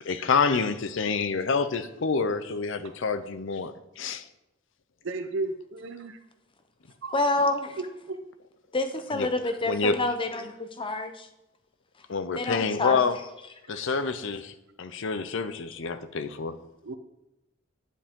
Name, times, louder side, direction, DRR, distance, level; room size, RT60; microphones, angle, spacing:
voice 1, 0.0-4.2 9.1-9.3 9.7-10.0 12.1-13.2 13.7-16.6, left 4 dB, 65° left, 12 dB, 0.6 m, -27 dB
voice 2, 5.0-6.2 7.0-7.1 7.8-8.2 16.8-17.0, right 3 dB, 65° right, 6 dB, 0.6 m, -34 dB
voice 3, 7.1-7.8 8.7-11.3 12.3-13.0 13.7-13.8 15.9-16.0, left 2 dB, 25° left, 7 dB, 0.7 m, -28 dB
10.0 x 7.1 x 3.7 m, 0.92 s
head